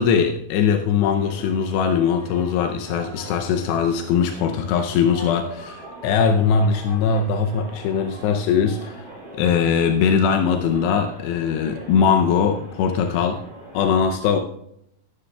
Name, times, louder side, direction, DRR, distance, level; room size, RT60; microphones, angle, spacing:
voice 1, 0.0-13.4 13.7-14.4, left 6 dB, 90° left, 4 dB, 2.9 m, -21 dB
sound 1, 1.0-13.8, right 2 dB, 25° right, 6.0 m, -41 dB
20.5 x 10.0 x 2.3 m, 0.73 s
omnidirectional pair, 4.8 m